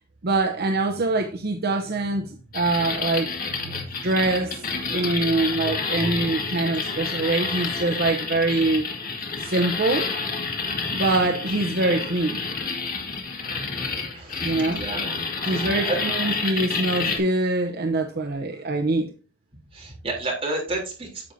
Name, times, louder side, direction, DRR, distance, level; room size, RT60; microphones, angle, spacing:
voice 1, 0.2-8.9 9.4-10.1 10.9-12.4 14.4-14.8 15.5-19.1, right 2 dB, 50° right, 0.8 m, -24 dB
sound 1, 2.5-17.2, left 4 dB, 45° left, 1.9 m, -29 dB
voice 2, 14.1-15.5 15.9-16.0 19.7-21.3, right 2 dB, 30° right, 3.4 m, -31 dB
9.6 x 7.8 x 2.7 m
head